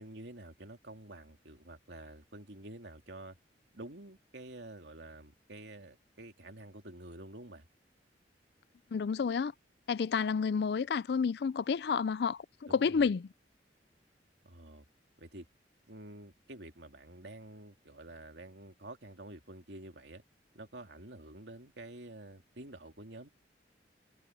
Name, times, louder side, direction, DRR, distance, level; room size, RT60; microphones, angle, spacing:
voice 1, 0.0-3.4 3.7-7.7 12.7-13.0 14.4-14.9 15.2-15.5 15.9-20.2 20.5-23.3, right 1 dB, 75° right, 2.5 m, -49 dB
voice 2, 8.9-9.5 9.9-13.3, left 5 dB, 65° left, 0.4 m, -30 dB
head